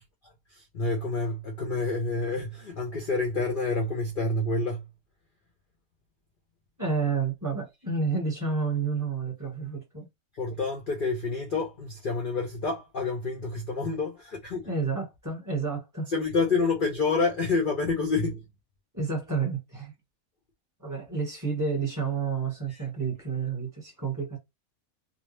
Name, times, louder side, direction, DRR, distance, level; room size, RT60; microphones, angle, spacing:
voice 1, 0.7-4.8 10.4-14.6 16.1-18.4 22.7-22.8, left 3 dB, 75° left, 0.4 m, -28 dB
voice 2, 6.8-10.1 14.6-16.1 18.9-19.9 20.8-24.4, right 5 dB, 15° right, 1.1 m, -30 dB
2.6 x 2.0 x 3.2 m
omnidirectional pair, 1.6 m